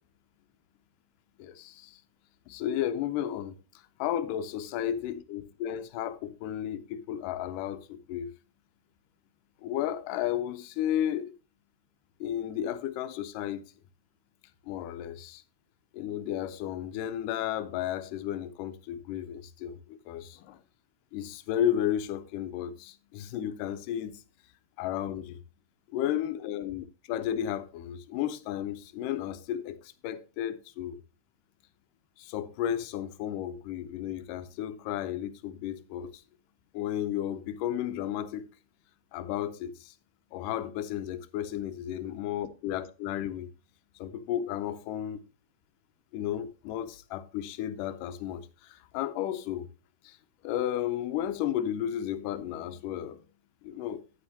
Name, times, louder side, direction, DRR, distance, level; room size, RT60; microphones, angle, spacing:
voice 1, 1.4-2.0 2.5-3.6 4.0-8.3 9.6-11.3 12.2-13.6 14.7-15.4 15.9-20.6 21.1-24.2 24.8-25.4 25.9-31.0 32.2-36.2 36.7-38.5 39.1-39.9 40.3-43.5 44.0-45.2 46.1-49.7 50.0-50.2 50.4-53.2 53.6-54.0, left 11 dB, 85° left, 2.3 m, -33 dB
9.7 x 9.5 x 2.8 m
omnidirectional pair, 3.7 m